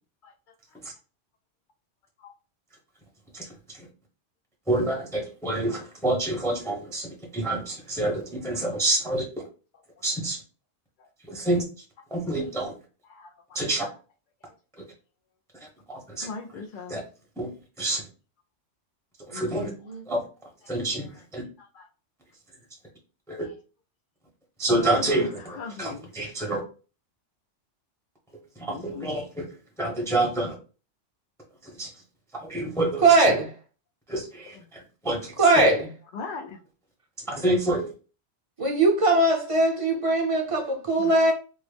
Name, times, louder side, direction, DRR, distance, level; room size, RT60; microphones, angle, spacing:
voice 1, 3.3-3.9 4.7-9.2 10.0-10.4 11.3-11.6 12.1-12.7 13.5-13.8 15.9-16.3 16.9-17.0 17.4-17.5 17.8-18.0 19.3-19.7 20.1-20.2 20.7-21.1 21.3-21.4 23.3-23.5 24.6-26.6 28.6-29.5 29.8-30.5 31.6-31.9 32.3-33.3 34.1-35.3 37.3-37.9, right 1 dB, 5° left, 0.7 m, -28 dB
voice 2, 13.0-13.6 16.2-17.0 19.5-19.6 20.6-20.8 21.6-21.9 24.7-25.3 25.5-26.1 28.7-29.2 34.5-34.7 36.1-36.6 41.0-41.1, left 4 dB, 55° left, 0.6 m, -39 dB
voice 3, 19.3-20.0 33.0-33.5 35.4-35.9 38.6-41.3, right 2 dB, 35° right, 0.6 m, -21 dB
3.7 x 2.0 x 3.3 m
omnidirectional pair, 1.2 m